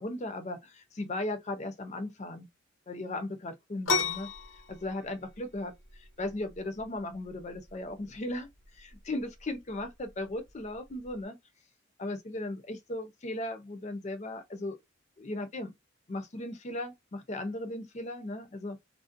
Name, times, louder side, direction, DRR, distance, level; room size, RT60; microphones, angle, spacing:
voice 1, 0.0-2.5 2.9-4.3 4.7-8.5 8.7-11.4 12.0-14.8 15.2-15.7 16.1-18.8, left 1 dB, 35° left, 0.5 m, -37 dB
sound 1, 3.9-11.2, left 4 dB, 75° left, 0.6 m, -37 dB
2.5 x 2.1 x 2.4 m
head